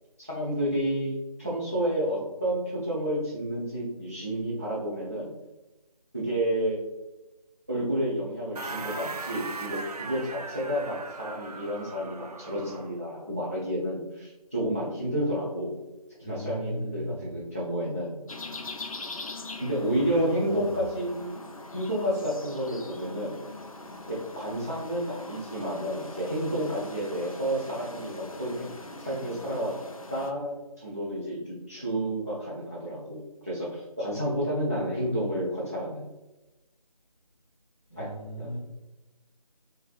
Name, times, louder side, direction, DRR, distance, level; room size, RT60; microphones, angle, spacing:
voice 1, 0.2-5.3 6.1-6.8 7.7-15.8 16.3-18.2 19.6-21.3 21.7-23.4 24.1-28.7 29.0-29.7 30.1-36.1 38.0-38.1 38.4-38.5, right 1 dB, 25° right, -8 dB, 0.5 m, -30 dB
sound 1, 8.5-13.0, right 3 dB, 80° right, 0.4 m, -39 dB
voice 2, 16.2-17.3 19.8-20.8 37.9-38.6, left 1 dB, ahead, -22 dB, 0.8 m, -34 dB
sound 2, 18.3-30.3, left 2 dB, 60° left, 0.5 m, -42 dB
3.4 x 3.1 x 2.2 m, 1.0 s
figure-of-eight pair, 160°, 20 cm